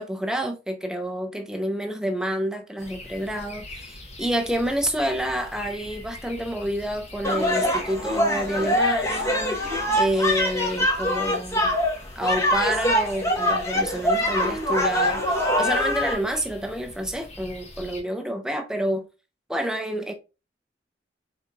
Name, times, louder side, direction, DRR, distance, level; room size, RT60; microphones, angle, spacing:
voice 1, 0.0-11.8 12.2-19.1 19.5-20.1, equal, 5° right, 0.7 m, -28 dB
sound 1, 2.8-18.0, left 1 dB, 35° left, 1.1 m, -42 dB
sound 2, 7.2-16.1, equal, 15° left, 1.1 m, -23 dB
4.9 x 4.1 x 2.3 m
head